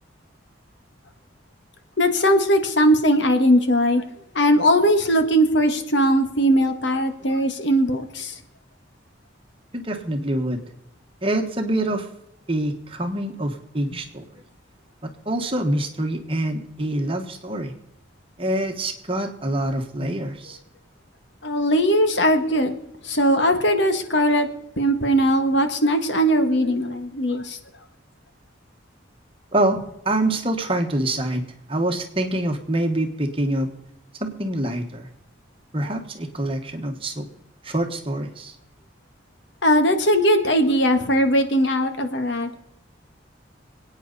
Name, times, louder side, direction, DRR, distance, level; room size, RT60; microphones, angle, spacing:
voice 1, 2.0-4.0 4.3-8.3 21.4-22.8 23.0-24.5 24.8-27.6 39.6-42.6, equal, 65° left, 7 dB, 1.6 m, -19 dB
voice 2, 9.7-10.6 11.2-12.1 12.5-14.2 15.0-17.7 18.4-20.6 29.5-31.4 31.7-33.7 34.2-35.1 35.7-37.3 37.6-38.5, right 1 dB, 30° right, 5 dB, 1.5 m, -25 dB
26.0 x 9.2 x 4.2 m, 0.85 s
head